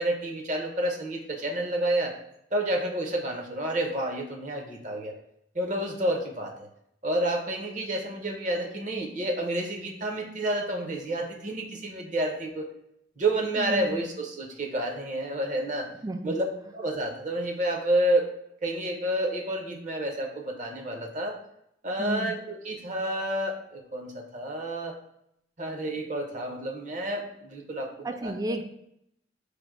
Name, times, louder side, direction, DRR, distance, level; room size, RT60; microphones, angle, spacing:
voice 1, 0.0-2.1 2.5-5.1 5.5-6.7 7.0-12.7 13.2-15.9 16.2-16.5 16.7-18.3 18.6-21.4 21.8-25.0 25.6-28.4, right 1 dB, 40° right, 1 dB, 0.8 m, -29 dB
voice 2, 13.6-14.0 16.0-16.4 22.0-22.3 28.0-28.6, right 2 dB, 20° right, 7 dB, 0.3 m, -32 dB
5.0 x 2.1 x 4.6 m, 0.75 s
head